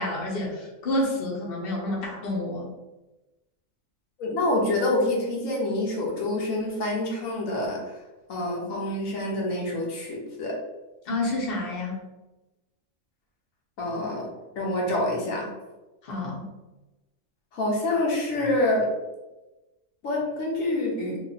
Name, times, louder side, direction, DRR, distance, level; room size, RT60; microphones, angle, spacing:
voice 1, 0.0-2.7 11.1-12.0 16.0-16.5, left 1 dB, 50° left, -2 dB, 1.0 m, -29 dB
voice 2, 4.2-8.0 8.3-10.6 13.8-14.3 14.6-15.5 17.5-18.9 20.0-21.2, left 1 dB, 80° left, -2 dB, 1.2 m, -27 dB
3.0 x 2.5 x 3.9 m, 1.1 s
omnidirectional pair, 1.4 m